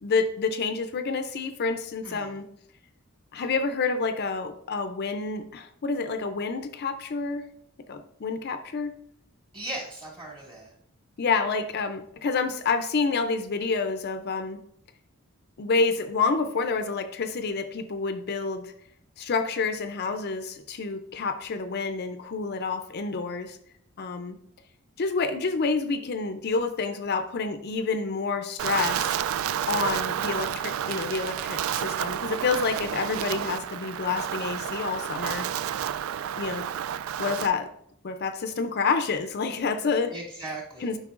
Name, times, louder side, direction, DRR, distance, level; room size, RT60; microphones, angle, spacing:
voice 1, 0.0-2.5 3.3-7.5 7.9-8.9 11.2-14.6 15.6-18.7 19.2-23.6 24.0-24.4 25.0-29.2 29.7-35.5 36.4-36.7 37.2-37.7 38.0-40.1 40.8-41.0, left 4 dB, 50° left, 8 dB, 0.4 m, -28 dB
voice 2, 2.0-2.4 9.5-10.7 40.1-41.0, right 1 dB, 25° right, -4 dB, 2.4 m, -38 dB
Wind, 28.6-37.5, right 9 dB, 75° right, 0.3 m, -30 dB
10.5 x 5.3 x 2.4 m, 0.71 s
head